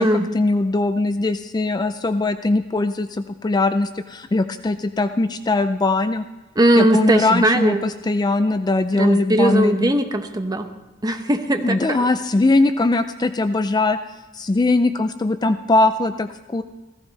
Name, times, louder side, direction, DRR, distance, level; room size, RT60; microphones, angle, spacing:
voice 1, 0.0-6.2 6.8-9.9 11.6-14.0 14.3-16.6, left 2 dB, 20° left, 10 dB, 0.4 m, -20 dB
voice 2, 6.6-7.8 9.0-10.7 11.0-12.0, right 1 dB, 20° right, 6 dB, 0.9 m, -19 dB
15.5 x 15.0 x 4.1 m, 1.1 s
head